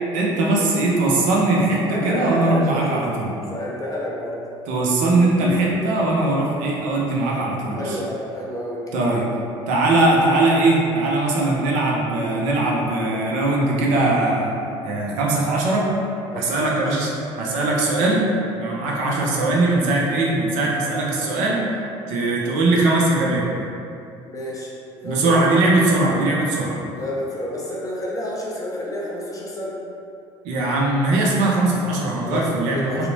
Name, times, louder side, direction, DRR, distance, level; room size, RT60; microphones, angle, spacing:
voice 1, 0.1-3.3 4.7-8.0 8.9-9.2 9.7-14.5 14.8-15.8 16.4-17.1 17.4-18.3 18.6-21.6 22.1-23.4 25.0-26.8 30.4-33.1, right 2 dB, 70° right, -3 dB, 0.5 m, -20 dB
voice 2, 1.9-3.0 3.5-4.4 7.7-9.1 16.3-16.9 24.2-25.5 26.9-29.8 32.2-33.1, left 1 dB, 25° left, -4 dB, 0.7 m, -30 dB
2.8 x 2.0 x 2.6 m, 2.6 s
hypercardioid pair, 70°, 13 cm